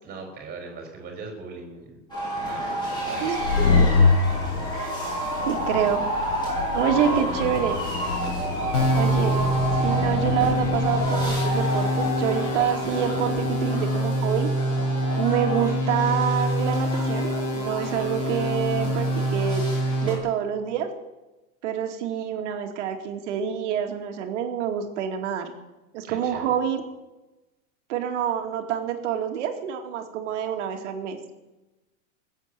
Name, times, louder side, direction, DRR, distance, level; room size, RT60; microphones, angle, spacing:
voice 1, 0.0-2.0 2.3-3.5 6.9-7.3 8.3-8.7 26.0-26.6, right 3 dB, 20° right, 3 dB, 3.8 m, -40 dB
sound 1, 2.1-20.2, equal, 10° left, 6.9 m, -31 dB
sound 2, 3.2-13.7, left 4 dB, 70° left, 1.7 m, -27 dB
voice 2, 3.2-3.9 4.7-5.0 5.5-6.0 6.7-7.8 8.9-9.4 9.8-14.5 15.2-19.6 20.0-20.9 21.6-25.5 25.9-26.8 27.9-31.2, right 9 dB, 55° right, 5 dB, 2.4 m, -27 dB
sound 3, 8.7-20.1, equal, 55° left, 6.0 m, -25 dB
21.0 x 8.2 x 7.6 m, 1.1 s
supercardioid pair, 160°, 43 cm